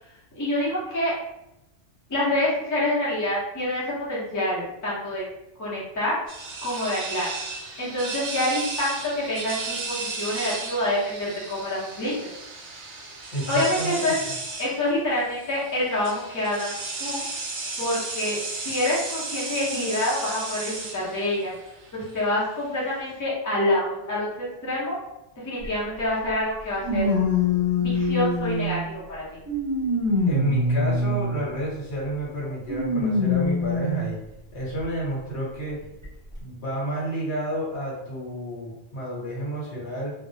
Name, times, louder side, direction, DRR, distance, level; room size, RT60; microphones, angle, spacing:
voice 1, 0.3-1.1 2.1-5.2 5.6-6.2 6.6-7.3 7.8-12.3 13.5-14.2 14.6-16.7 17.0-17.2 17.8-21.5 21.9-25.0 25.4-27.1 27.8-29.4, left 1 dB, 20° left, -7 dB, 0.5 m, -27 dB
sound 1, 6.3-23.2, right 3 dB, 60° right, 0.7 m, -34 dB
voice 2, 13.3-14.1 30.3-34.2 34.5-35.8 36.4-40.1, equal, 65° left, -5 dB, 1.1 m, -30 dB
sound 2, 25.6-25.7 26.8-28.9 29.5-31.5 32.7-34.1 34.8-34.9 36.0-36.1, left 2 dB, 15° right, 0.9 m, -24 dB
2.3 x 2.0 x 2.6 m, 0.89 s
omnidirectional pair, 1.2 m